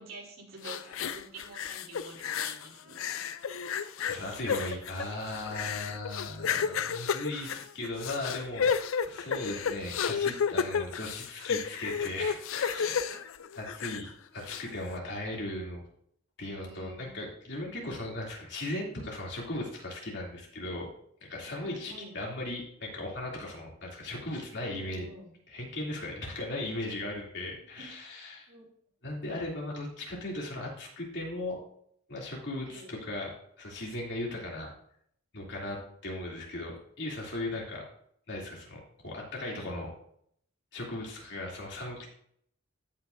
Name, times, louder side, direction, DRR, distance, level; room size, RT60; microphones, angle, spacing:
voice 1, 0.0-3.0 13.1-13.2 16.5-17.1 21.6-22.1 24.6-25.3 27.8-27.9 28.5-28.7 32.6-32.9, right 2 dB, 85° right, -1 dB, 3.0 m, -48 dB
sound 1, 0.6-2.7 3.0-14.1 14.5-14.6, left 7 dB, 75° left, 0.4 m, -32 dB
voice 2, 4.1-8.7 9.0-13.0 13.6-15.8 16.4-20.9 21.3-25.1 25.5-28.5 29.0-31.6 32.1-33.3 33.6-34.7 35.3-37.8 38.3-39.9 40.7-42.1, left 1 dB, 60° left, -2 dB, 2.8 m, -37 dB
15.5 x 5.7 x 2.6 m, 0.67 s
head